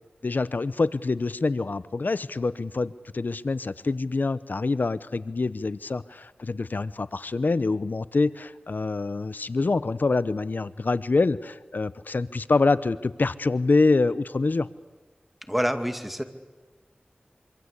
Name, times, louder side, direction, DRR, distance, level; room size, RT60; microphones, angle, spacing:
voice 1, 0.2-14.7, left 3 dB, 70° left, 16 dB, 0.8 m, -25 dB
voice 2, 15.5-16.2, equal, 5° right, 8 dB, 2.4 m, -26 dB
25.5 x 25.5 x 8.3 m, 1.3 s
wide cardioid pair, 50°, 3 cm